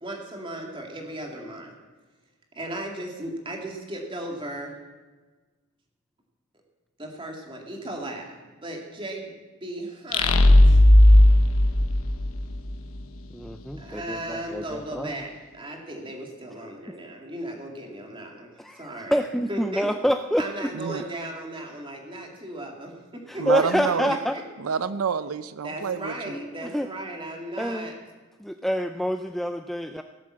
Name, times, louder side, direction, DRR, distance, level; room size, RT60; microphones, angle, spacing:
voice 1, 0.0-1.7 2.5-4.7 7.0-10.4 10.6-10.8 13.8-19.2 19.5-20.0 20.4-24.4 25.6-28.0, right 1 dB, 25° right, 1 dB, 2.3 m, -36 dB
sound 1, 10.1-12.8, left 1 dB, 85° left, 1.0 m, -15 dB
voice 2, 13.3-15.2 18.6-21.0 23.3-24.4 26.3-26.9 27.6-27.9 28.4-30.0, equal, ahead, 6 dB, 0.3 m, -27 dB
voice 3, 23.4-24.1 24.6-26.1, right 6 dB, 85° right, 14 dB, 0.5 m, -27 dB
17.5 x 7.5 x 7.5 m, 1.3 s
head